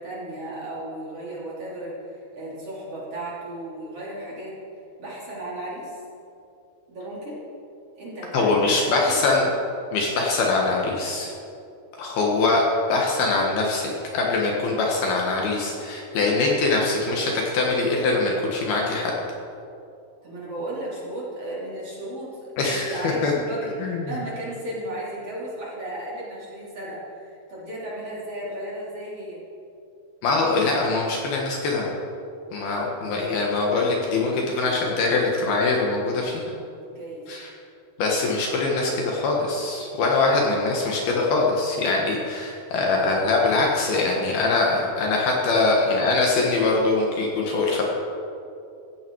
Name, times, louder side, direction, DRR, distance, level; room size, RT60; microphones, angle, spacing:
voice 1, 0.0-4.6 5.0-6.0 6.9-7.4 8.0-9.2 20.2-29.4 36.9-37.3, right 1 dB, 35° right, -6 dB, 3.8 m, -34 dB
voice 2, 8.3-9.5 9.9-11.3 12.0-12.6 12.9-19.1 22.6-23.3 23.8-24.1 30.2-31.9 32.5-36.4 37.3-37.5 38.0-47.8, left 3 dB, 65° left, -1 dB, 3.0 m, -23 dB
16.0 x 15.0 x 4.7 m, 2.6 s
omnidirectional pair, 5.2 m